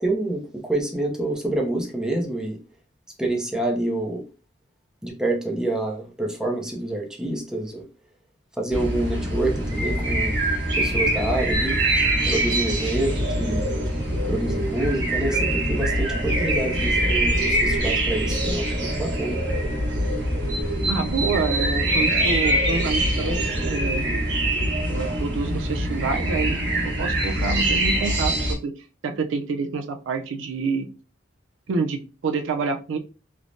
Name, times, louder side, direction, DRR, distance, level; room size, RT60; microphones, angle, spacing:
voice 1, 0.0-2.6 3.2-4.2 5.0-7.8 8.6-10.3 10.8-11.8 12.3-13.1 13.4-13.7 14.3-19.4, right 2 dB, 5° right, 0 dB, 0.5 m, -27 dB
sound 1, 8.7-28.5, right 1 dB, 65° right, 1.0 m, -24 dB
voice 2, 20.9-24.0 24.9-28.7 29.0-30.9 31.7-33.0, right 4 dB, 80° right, 6 dB, 0.4 m, -27 dB
3.2 x 2.0 x 2.5 m, 0.34 s
head